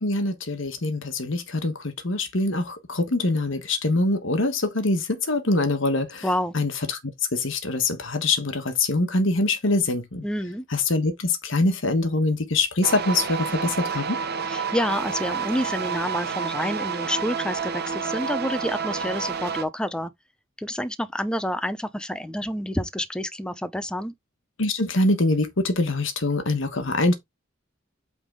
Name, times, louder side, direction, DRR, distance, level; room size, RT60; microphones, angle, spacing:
voice 1, 0.0-6.2 6.5-7.0 7.3-10.2 10.7-14.2 24.6-27.1, left 2 dB, 70° left, 1.3 m, -24 dB
voice 2, 6.2-6.5 10.2-10.6 14.5-20.1 20.6-24.1, equal, 5° left, 0.7 m, -28 dB
sound 1, 12.8-19.7, right 5 dB, 55° right, 1.1 m, -29 dB
8.5 x 3.7 x 3.7 m
head